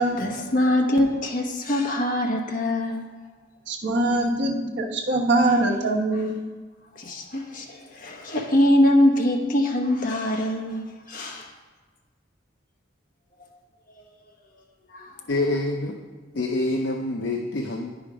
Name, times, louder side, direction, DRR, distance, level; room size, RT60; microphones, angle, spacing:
voice 1, 0.0-3.1 6.1-6.2 6.9-11.5 13.9-14.0 14.9-15.3, left 1 dB, 45° left, 1 dB, 1.0 m, -23 dB
voice 2, 3.7-6.3, right 2 dB, 65° right, 0 dB, 1.0 m, -23 dB
voice 3, 15.3-16.0 16.3-17.9, left 2 dB, 65° left, 2 dB, 0.6 m, -26 dB
9.5 x 5.2 x 5.0 m, 1.4 s
head